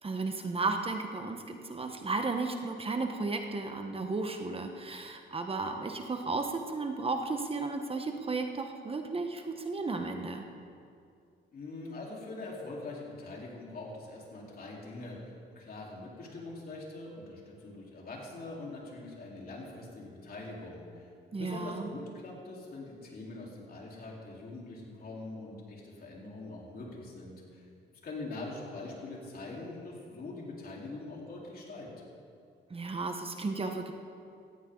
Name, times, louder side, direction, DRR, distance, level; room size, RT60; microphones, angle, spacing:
voice 1, 0.0-10.5 21.3-21.9 32.7-33.9, right 3 dB, 30° right, 5 dB, 1.2 m, -34 dB
voice 2, 11.5-27.6 28.0-31.9, left 2 dB, 50° left, -3 dB, 4.1 m, -43 dB
18.0 x 14.5 x 4.0 m, 2.4 s
cardioid pair, 90°, 20 cm